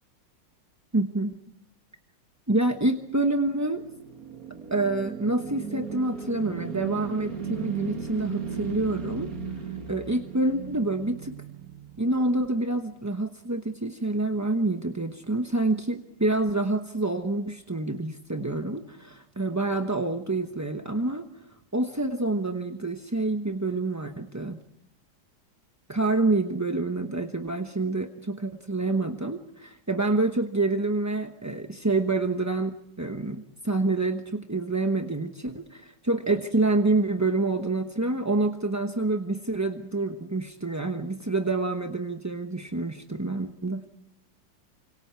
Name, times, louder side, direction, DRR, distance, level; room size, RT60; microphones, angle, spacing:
voice 1, 0.9-1.3 2.5-3.8 4.7-9.3 9.9-11.3 12.0-21.3 21.7-24.6 25.9-43.8, right 2 dB, 15° right, 5 dB, 0.7 m, -27 dB
sound 1, 3.3-12.5, right 6 dB, 50° right, 2.2 m, -37 dB
28.5 x 26.0 x 4.6 m, 0.80 s
omnidirectional pair, 2.0 m